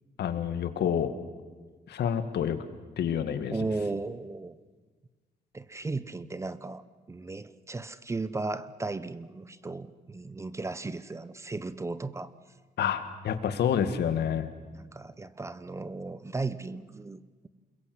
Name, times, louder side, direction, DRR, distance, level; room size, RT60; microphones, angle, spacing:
voice 1, 0.2-1.1 1.9-2.6 3.0-3.5 12.8-14.5, left 8 dB, 80° left, 9 dB, 2.1 m, -28 dB
voice 2, 3.5-4.6 5.5-6.8 7.1-12.3 14.7-17.5, right 3 dB, 15° right, 15 dB, 0.7 m, -35 dB
28.5 x 22.0 x 8.0 m, 1.4 s
wide cardioid pair, 160°, 17 cm